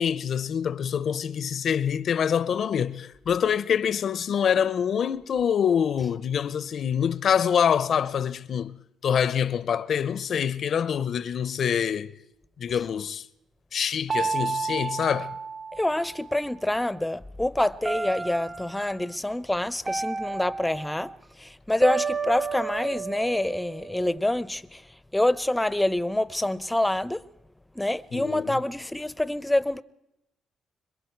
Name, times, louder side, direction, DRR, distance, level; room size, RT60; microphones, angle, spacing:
voice 1, 0.0-12.2 12.6-13.2 13.7-15.4 28.1-28.6, left 8 dB, 60° left, 0.6 m, -25 dB
sound 1, 14.1-16.4 17.8-18.9 19.9-21.1 21.8-24.2, right 5 dB, 30° right, 0.6 m, -31 dB
voice 2, 15.8-21.1 21.4-24.8 25.1-27.2 27.8-29.8, left 1 dB, 10° left, 0.6 m, -26 dB
26.0 x 22.5 x 4.6 m
cardioid pair, 90°, 0 cm